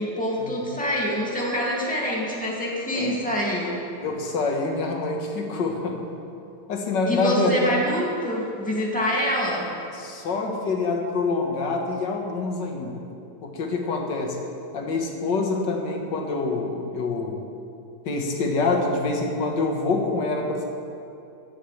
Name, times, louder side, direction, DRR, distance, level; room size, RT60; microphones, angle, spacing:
voice 1, 0.0-3.8 7.1-9.7, equal, 5° left, -4 dB, 2.3 m, -26 dB
voice 2, 4.0-6.0 6.7-7.8 9.9-13.0 13.4-14.4 14.7-17.4 18.0-20.6, left 3 dB, 65° left, 1 dB, 2.1 m, -26 dB
17.0 x 14.5 x 3.4 m, 2.6 s
omnidirectional pair, 2.0 m